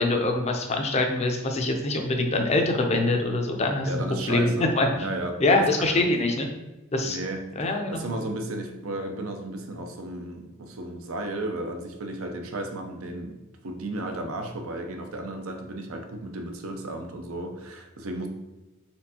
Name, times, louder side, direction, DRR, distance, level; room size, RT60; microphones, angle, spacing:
voice 1, 0.0-3.9 4.3-4.9 5.4-6.5 6.9-7.2 7.6-8.1, left 2 dB, 30° left, 3 dB, 0.5 m, -24 dB
voice 2, 3.8-6.0 7.0-13.4 13.6-18.3, right 1 dB, 70° right, 4 dB, 0.6 m, -34 dB
4.3 x 3.6 x 2.8 m, 1.1 s
head